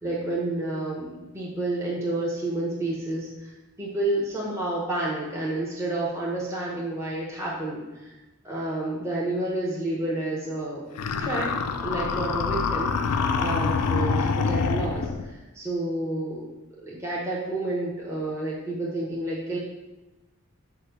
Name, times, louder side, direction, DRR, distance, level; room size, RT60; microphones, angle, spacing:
voice 1, 0.0-3.5 3.8-8.1 8.4-10.8 11.2-11.5 11.8-16.5 16.8-19.6, right 2 dB, 15° right, -6 dB, 0.7 m, -30 dB
sound 1, 11.0-15.3, left 5 dB, 85° left, 0.3 m, -26 dB
4.7 x 2.1 x 4.5 m, 1.1 s
head